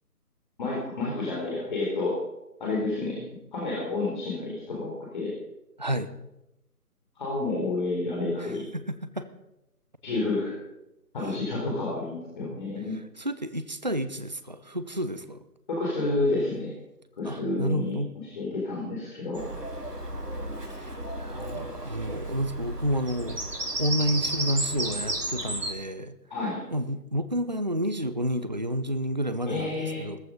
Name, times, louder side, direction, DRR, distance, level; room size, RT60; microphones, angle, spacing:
voice 1, 0.6-2.1 2.6-3.2 3.5-5.3 7.2-8.6 10.0-10.5 11.1-13.0 15.7-16.7 17.2-18.0 18.4-19.4 26.3-26.6 29.5-30.0, left 2 dB, 30° left, -4 dB, 4.2 m, -29 dB
voice 2, 5.8-6.1 8.4-9.3 11.3-11.4 12.9-15.4 17.2-18.1 20.8-23.4 23.8-26.2 26.7-30.2, equal, 30° right, 12 dB, 0.6 m, -30 dB
Bird vocalization bird call bird song, 19.3-25.7, right 1 dB, 85° right, 3.8 m, -33 dB
15.5 x 14.5 x 5.4 m, 0.91 s
figure-of-eight pair, 160°, 47 cm